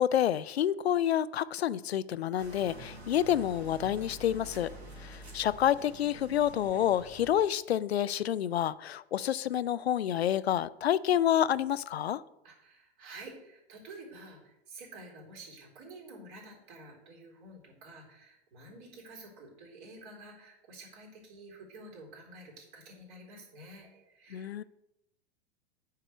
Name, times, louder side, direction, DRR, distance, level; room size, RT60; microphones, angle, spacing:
voice 1, 0.0-4.7 5.0-12.2 24.3-24.6, left 10 dB, 75° left, 17 dB, 0.5 m, -28 dB
sound 1, 2.4-7.4, right 1 dB, 85° right, 2.3 m, -47 dB
voice 2, 12.4-24.5, right 2 dB, 50° right, -1 dB, 3.9 m, -50 dB
9.3 x 4.8 x 6.9 m, 0.88 s
figure-of-eight pair, 95°, 32 cm